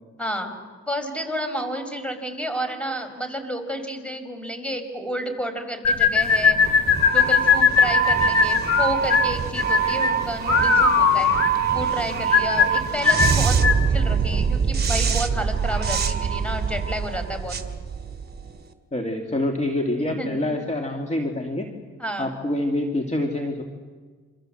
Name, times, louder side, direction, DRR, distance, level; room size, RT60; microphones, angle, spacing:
voice 1, 0.2-0.5 0.9-11.3 11.7-17.6 20.2-20.4 22.0-22.3, equal, 5° left, 7 dB, 5.2 m, -31 dB
sound 1, 5.8-13.9, left 6 dB, 55° left, 2.6 m, -19 dB
sound 2, 6.2-18.6, right 7 dB, 35° right, 2.8 m, -24 dB
voice 2, 18.9-21.7 22.2-23.6, left 1 dB, 25° left, 3 dB, 2.6 m, -26 dB
28.0 x 26.0 x 7.8 m, 1.5 s
cardioid pair, 90°, 30 cm